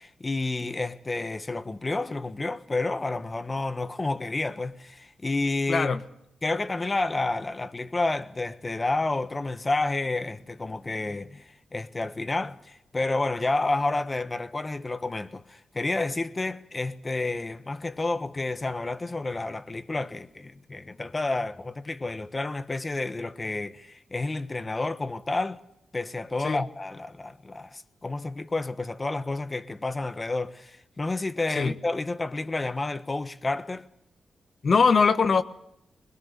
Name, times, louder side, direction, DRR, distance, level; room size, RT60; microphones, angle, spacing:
voice 1, 0.0-5.9 6.4-25.6 25.9-33.8, left 2 dB, 30° left, 1.3 m, -30 dB
voice 2, 5.7-6.0 26.4-26.6 31.5-31.7 34.6-35.4, left 5 dB, 55° left, 1.3 m, -21 dB
21.0 x 21.0 x 6.8 m
cardioid pair, 75°, 0 cm